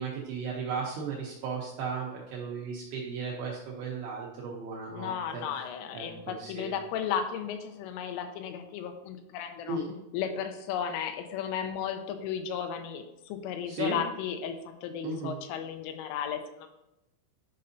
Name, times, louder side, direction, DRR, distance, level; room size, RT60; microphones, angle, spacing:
voice 1, 0.0-5.4 5.9-6.7 9.7-9.8 13.7-14.0 15.0-15.4, right 4 dB, 80° right, -3 dB, 2.4 m, -35 dB
voice 2, 4.9-9.8 10.1-16.7, left 8 dB, 85° left, 6 dB, 3.2 m, -34 dB
10.5 x 5.4 x 2.7 m, 0.90 s
omnidirectional pair, 5.9 m